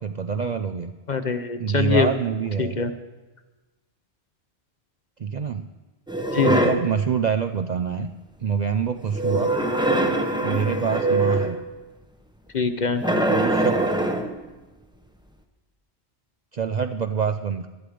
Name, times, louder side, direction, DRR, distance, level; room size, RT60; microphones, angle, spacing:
voice 1, 0.0-0.9 1.6-2.8 5.2-5.7 6.4-8.1 8.4-9.5 10.4-11.6 13.3-13.8 16.5-17.7, right 6 dB, 50° right, 8 dB, 0.5 m, -25 dB
voice 2, 1.1-2.1 2.6-2.9 6.3-6.7 12.5-13.0, left 5 dB, 45° left, 9 dB, 0.8 m, -23 dB
sound 1, 6.1-6.9 9.1-11.6 13.0-14.4, right 2 dB, 5° right, 0.8 m, -23 dB
19.0 x 11.5 x 5.0 m, 1.2 s
omnidirectional pair, 1.2 m